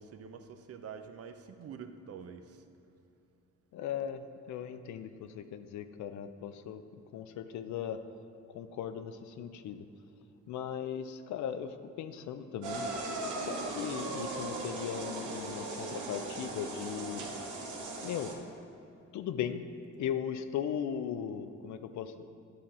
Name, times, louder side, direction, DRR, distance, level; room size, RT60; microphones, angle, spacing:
voice 1, 0.0-2.6, right 6 dB, 50° right, 8 dB, 0.6 m, -46 dB
voice 2, 3.7-8.0 8.5-9.9 10.5-12.9 13.4-17.2 18.0-18.4 19.1-19.7 20.0-22.2, left 8 dB, 70° left, 10 dB, 0.5 m, -38 dB
sound 1, 12.6-18.3, right 2 dB, 80° right, 1.2 m, -38 dB
11.0 x 3.8 x 4.2 m, 2.5 s
cardioid pair, 90°, 30 cm